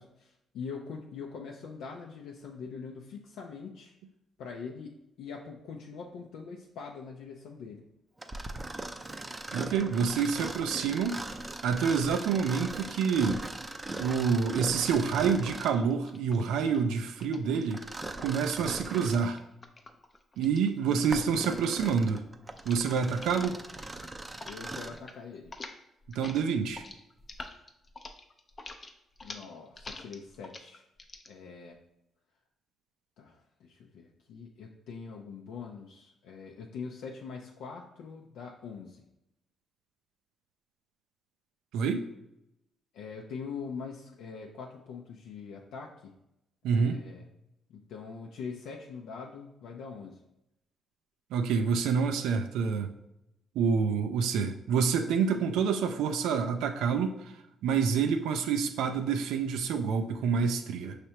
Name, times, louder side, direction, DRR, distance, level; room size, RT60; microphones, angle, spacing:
voice 1, 0.0-3.9 4.4-7.8 24.5-25.5 29.2-30.8 31.3-31.8 33.2-39.0 42.9-46.1 46.6-47.2 47.7-50.2, left 5 dB, 85° left, 0 dB, 0.5 m, -43 dB
Mechanisms, 8.2-15.9 17.7-19.3 19.9-20.0 20.7-25.0, right 2 dB, 20° right, 0.4 m, -40 dB
voice 2, 9.5-11.2 11.6-13.4 14.0-17.8 18.2-19.4 20.4-22.2 22.7-23.6 26.1-26.8 41.7-42.0 46.6-47.0 51.3-52.9 53.6-57.3 57.6-61.0, right 6 dB, 90° right, 7 dB, 0.3 m, -27 dB
sound 1, 13.1-14.6 15.5-18.0 18.9-21.4 21.7-22.1 22.5-22.9 23.1-23.4 23.7-24.6 24.8-25.2 25.4-31.3, left 3 dB, 35° left, 0.5 m, -48 dB
5.7 x 3.2 x 2.8 m, 0.85 s
cardioid pair, 90°, 0 cm